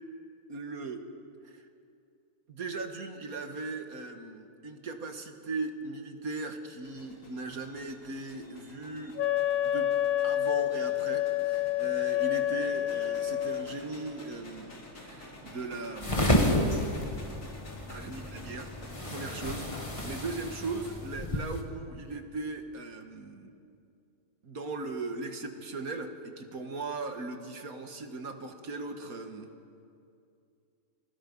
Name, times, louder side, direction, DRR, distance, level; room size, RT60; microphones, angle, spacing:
voice 1, 0.5-1.1 1.4-1.6 2.5-9.2 9.6-9.9 10.2-16.6 17.9-18.8 19.0-23.5 24.4-29.5, right 3 dB, 70° right, 6 dB, 2.1 m, -38 dB
sound 1, 6.8-21.0, left 1 dB, 90° left, 3.4 m, -50 dB
Wind instrument woodwind instrument, 9.2-13.7, left 12 dB, 70° left, 1.2 m, -28 dB
sound 2, 16.0-21.6, left 1 dB, 20° left, 2.1 m, -30 dB
29.5 x 25.0 x 5.5 m, 2.5 s
omnidirectional pair, 1.6 m